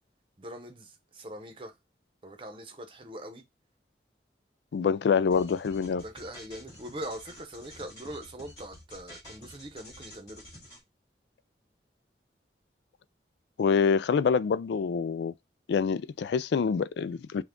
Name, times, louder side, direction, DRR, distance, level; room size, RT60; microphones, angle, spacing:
voice 1, 0.4-1.8 2.2-3.4 5.9-10.4, right 1 dB, 30° right, 0.8 m, -42 dB
voice 2, 4.7-6.0 13.6-15.3 15.7-17.4, left 6 dB, 75° left, 0.3 m, -26 dB
sound 1, 5.3-10.8, equal, 20° left, 2.5 m, -49 dB
5.8 x 2.3 x 3.7 m
head